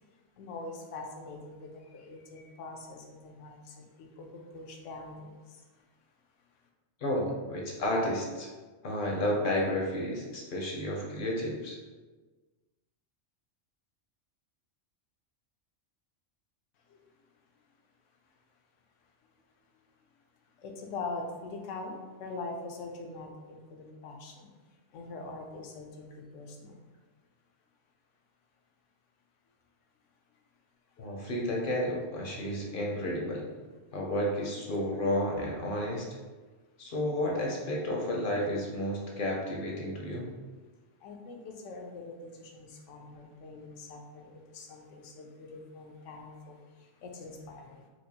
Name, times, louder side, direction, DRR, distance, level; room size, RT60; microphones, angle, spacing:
voice 1, 0.1-5.8 6.4-6.7 16.9-17.0 18.2-18.3 20.6-26.8 30.9-31.1 41.0-47.9, left 3 dB, 85° left, 2 dB, 1.0 m, -43 dB
voice 2, 7.0-8.5 8.8-11.8 31.0-33.5 33.9-36.1 36.8-40.3, left 1 dB, 55° left, -1 dB, 0.7 m, -31 dB
4.4 x 2.5 x 2.7 m, 1.3 s
omnidirectional pair, 1.2 m